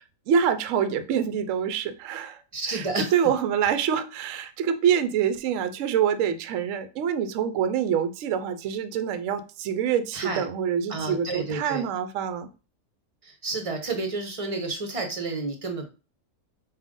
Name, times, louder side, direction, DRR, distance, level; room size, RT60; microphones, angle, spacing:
voice 1, 0.3-2.4 2.7-12.5, right 8 dB, 70° right, 10 dB, 0.9 m, -26 dB
voice 2, 2.5-3.1 10.1-10.5 10.9-11.8 13.4-15.9, right 3 dB, 30° right, 4 dB, 0.7 m, -30 dB
5.0 x 2.6 x 3.6 m, 0.33 s
omnidirectional pair, 1.5 m